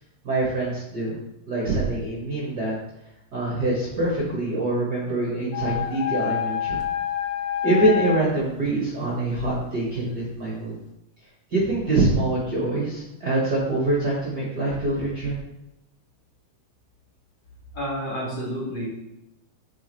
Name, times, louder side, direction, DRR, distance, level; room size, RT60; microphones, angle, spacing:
voice 1, 0.2-1.1 1.5-2.7 3.3-6.8 7.6-10.7 11.5-15.4, right 2 dB, 40° right, -5 dB, 1.6 m, -24 dB
sound 1, 5.5-8.2, left 9 dB, 70° left, 1.8 m, -27 dB
voice 2, 17.7-18.9, equal, 35° left, -7 dB, 2.7 m, -30 dB
9.8 x 6.2 x 3.2 m, 0.89 s
omnidirectional pair, 3.7 m